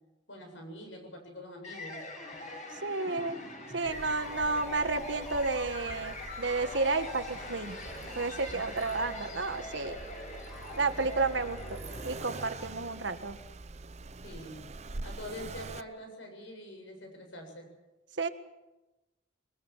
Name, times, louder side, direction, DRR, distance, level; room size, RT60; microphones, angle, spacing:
voice 1, 0.3-2.0 14.2-14.6 15.0-17.7, left 1 dB, 80° left, 4 dB, 7.7 m, -45 dB
sound 1, 1.6-12.8, left 2 dB, 40° left, 6.1 m, -43 dB
voice 2, 2.8-3.4 3.7-7.8 8.1-10.0 10.8-11.8 12.0-13.4 18.2-18.3, right 3 dB, 70° right, 9 dB, 1.5 m, -31 dB
Accelerating revving vroom, 3.8-15.8, right 3 dB, 35° right, 0.7 m, -45 dB
22.5 x 20.0 x 7.4 m, 1.0 s
head